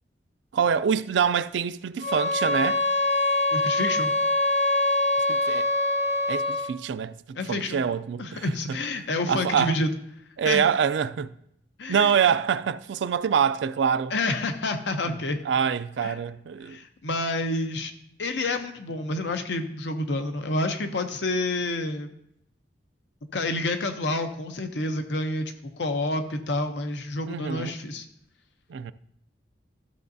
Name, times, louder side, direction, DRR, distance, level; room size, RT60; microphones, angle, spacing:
voice 1, 0.5-2.8 5.3-5.7 6.3-8.8 9.3-9.8 10.4-11.3 11.9-14.1 15.1-15.2 15.4-16.8 27.3-27.8 28.7-28.9, right 7 dB, 90° right, 0.4 m, -25 dB
sound 1, 2.0-6.8, left 2 dB, 65° left, 1.5 m, -24 dB
voice 2, 3.5-4.1 7.4-7.8 8.2-9.9 10.4-10.6 11.8-12.1 14.1-15.4 16.0-16.2 16.6-17.9 18.2-22.1 23.3-28.0, left 2 dB, 80° left, 0.7 m, -28 dB
13.0 x 6.6 x 2.7 m
head